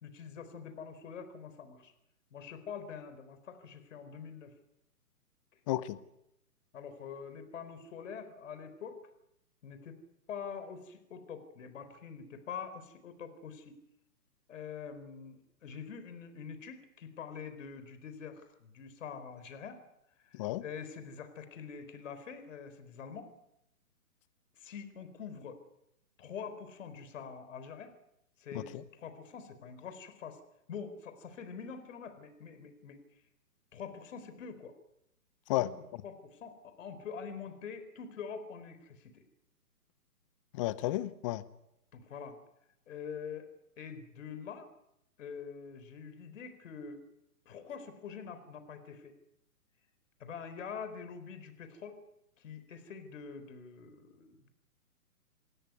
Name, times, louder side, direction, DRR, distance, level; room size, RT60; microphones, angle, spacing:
voice 1, 0.0-1.9 2.3-4.5 5.5-5.6 6.7-9.0 9.6-10.0 10.3-13.7 14.5-19.8 20.2-23.3 24.5-25.6 26.2-27.9 28.4-30.4 30.7-33.0 33.7-34.8 35.6-35.7 36.0-39.2 41.9-42.4 42.9-44.7 45.2-47.1 47.5-49.1 50.2-52.0 52.4-54.5, left 6 dB, 55° left, 10 dB, 4.3 m, -45 dB
voice 2, 5.7-6.0 20.3-20.6 28.5-28.8 35.5-35.7 40.5-41.4, left 16 dB, 20° left, 17 dB, 0.8 m, -32 dB
28.0 x 13.5 x 9.6 m, 0.81 s
hypercardioid pair, 135°, 46 cm